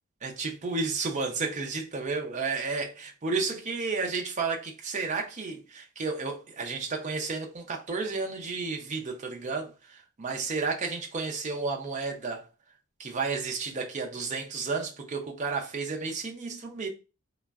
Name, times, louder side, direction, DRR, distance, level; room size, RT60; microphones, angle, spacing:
voice 1, 0.2-12.4 13.0-16.9, right 4 dB, 35° right, 0.4 m, -32 dB
3.3 x 2.0 x 2.3 m
head